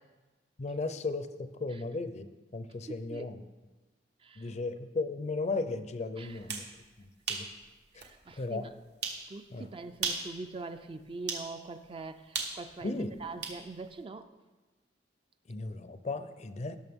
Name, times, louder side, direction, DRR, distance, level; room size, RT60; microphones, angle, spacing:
voice 1, 0.6-3.4 4.4-6.6 7.0-7.5 7.9-8.0 8.4-8.7 9.5-9.7 12.8-13.1 15.5-16.8, left 3 dB, 40° left, 12 dB, 0.5 m, -36 dB
voice 2, 2.9-3.3 4.2-4.4 6.2-6.4 7.9-8.7 9.3-14.3, right 3 dB, 30° right, 9 dB, 0.4 m, -43 dB
sound 1, 6.3-6.7 7.3-7.5 8.0-8.1 9.0-9.2 9.9-10.3 11.3-11.5 12.3-13.6, right 5 dB, 70° right, 1.4 m, -35 dB
17.5 x 6.3 x 3.6 m, 1.2 s
head